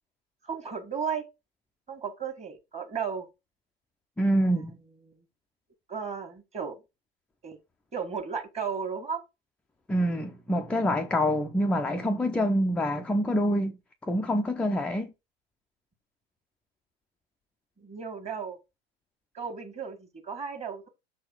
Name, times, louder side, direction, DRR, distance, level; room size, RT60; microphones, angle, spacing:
voice 1, 0.4-1.2 1.9-3.3 4.4-4.5 5.1-5.2 5.9-6.8 7.4-7.6 7.9-9.2 17.8-18.6 19.3-20.9, right 6 dB, 20° right, 1.7 m, -34 dB
voice 2, 4.2-4.7 9.9-13.7 14.0-15.1, equal, 5° left, 0.4 m, -26 dB
6.3 x 4.1 x 5.0 m
figure-of-eight pair, 85°, 32 cm